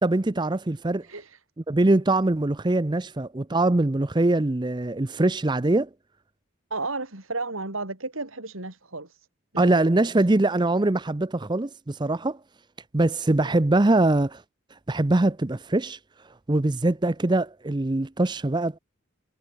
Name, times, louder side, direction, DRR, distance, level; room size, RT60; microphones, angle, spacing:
voice 1, 0.0-1.0 1.7-5.9 9.6-12.4 12.9-14.4 14.9-16.0 16.5-18.8, right 2 dB, 20° right, 0.6 m, -22 dB
voice 2, 1.0-1.4 6.7-9.3 9.5-9.8, right 3 dB, 90° right, 5.2 m, -33 dB
head